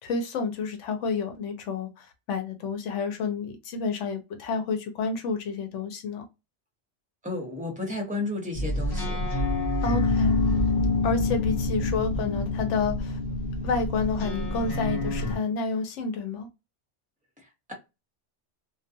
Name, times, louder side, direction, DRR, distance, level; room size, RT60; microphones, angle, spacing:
voice 1, 0.0-6.3 9.8-10.3 11.0-13.2 13.6-16.5, left 4 dB, 85° left, 1.0 m, -29 dB
voice 2, 7.2-9.2, left 2 dB, 10° right, 0.6 m, -32 dB
sound 1, 8.6-15.4, left 2 dB, 55° left, 0.8 m, -26 dB
2.3 x 2.2 x 2.6 m
omnidirectional pair, 1.2 m